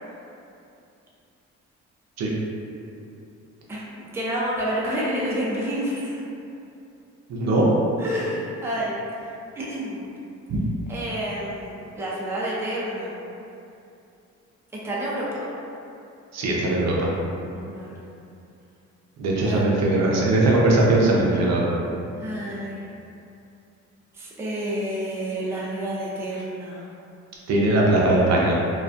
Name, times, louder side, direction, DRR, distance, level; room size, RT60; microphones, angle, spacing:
voice 1, 3.7-6.2 8.0-9.0 9.6-10.1 10.9-13.2 14.7-15.5 17.5-18.0 19.4-19.7 22.2-22.8 24.1-26.8, equal, 10° right, -6 dB, 0.4 m, -29 dB
voice 2, 7.3-7.7 16.3-17.1 19.2-21.7 27.5-28.6, right 2 dB, 60° right, -4 dB, 0.5 m, -20 dB
2.3 x 2.2 x 2.5 m, 2.7 s
cardioid pair, 90°, 30 cm